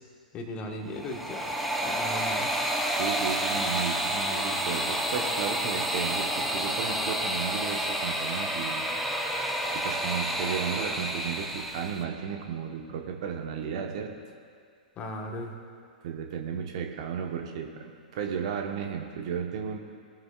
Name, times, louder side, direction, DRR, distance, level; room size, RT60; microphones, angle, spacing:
voice 1, 0.3-1.6 1.8-2.6 15.0-15.5, left 1 dB, 25° left, 3 dB, 1.4 m, -37 dB
sound 1, 0.9-12.0, right 1 dB, ahead, 0.9 m, -29 dB
voice 2, 3.0-8.8 9.7-14.1 16.0-19.8, right 7 dB, 50° right, 3 dB, 1.2 m, -34 dB
20.5 x 9.6 x 2.4 m, 2.1 s
figure-of-eight pair, 105°, 4 cm